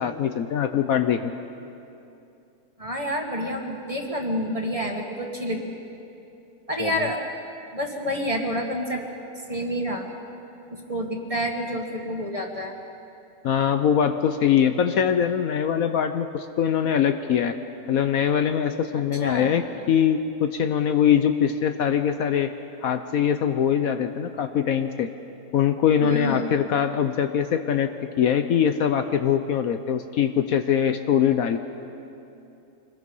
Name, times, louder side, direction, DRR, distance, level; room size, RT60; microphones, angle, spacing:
voice 1, 0.0-1.3 6.8-7.1 13.4-17.6 17.9-22.5 22.8-25.1 25.5-27.9 28.2-31.6, left 8 dB, 65° left, 8 dB, 1.1 m, -22 dB
voice 2, 2.8-5.7 6.7-7.2 7.7-9.0 9.5-10.1 10.7-12.7 19.2-19.5 26.0-26.5, equal, 20° right, 1 dB, 2.0 m, -28 dB
25.5 x 20.5 x 5.5 m, 2.8 s
omnidirectional pair, 1.7 m